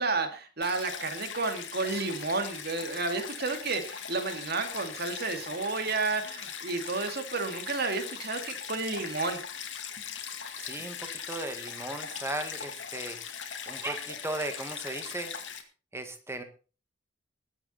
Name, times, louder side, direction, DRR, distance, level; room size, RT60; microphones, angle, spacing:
voice 1, 0.0-9.4, right 3 dB, 60° right, 7 dB, 2.2 m, -31 dB
Stream, 0.6-15.6, left 7 dB, 80° left, 2.3 m, -40 dB
voice 2, 10.6-13.4 13.7-15.3 15.9-16.4, right 2 dB, 15° right, 7 dB, 1.9 m, -37 dB
20.5 x 8.4 x 4.3 m, 0.36 s
head